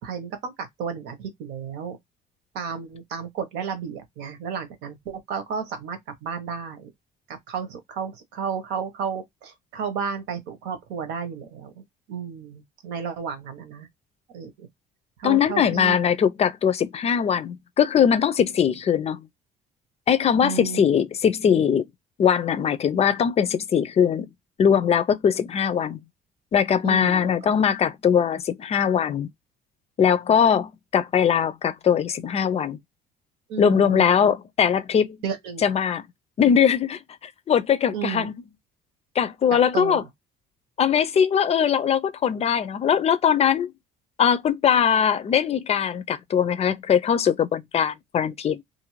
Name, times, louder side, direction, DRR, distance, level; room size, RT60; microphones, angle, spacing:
voice 1, 0.0-2.0 2.5-6.9 7.3-11.7 12.1-13.9 14.3-14.7 15.2-16.0 20.4-20.8 26.8-27.3 33.5-34.3 35.2-35.6 37.9-38.3 39.7-40.1, right 6 dB, 90° right, 1.1 m, -32 dB
voice 2, 15.2-19.3 20.1-21.9 22.2-24.3 24.6-26.0 26.5-29.3 30.0-32.8 33.6-35.2 35.6-36.0 36.4-38.3 39.2-40.0 40.8-43.7 44.2-48.6, left 8 dB, 40° left, 0.4 m, -21 dB
2.6 x 2.5 x 3.0 m
cardioid pair, 110°, 17 cm